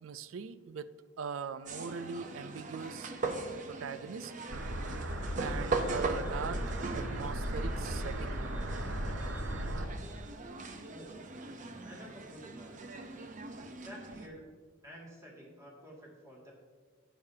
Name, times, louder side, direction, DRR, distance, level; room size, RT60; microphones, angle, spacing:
voice 1, 0.0-3.1 3.7-4.3 5.4-6.6 6.9-8.4, right 6 dB, 85° right, 14 dB, 0.4 m, -41 dB
sound 1, 1.7-14.3, right 3 dB, 40° right, 0.7 m, -40 dB
sound 2, 4.5-9.9, right 1 dB, 70° right, 0.8 m, -36 dB
voice 2, 11.8-12.9 13.8-14.4 14.8-16.5, equal, 15° right, -3 dB, 2.1 m, -50 dB
11.5 x 9.0 x 2.8 m, 1.5 s
head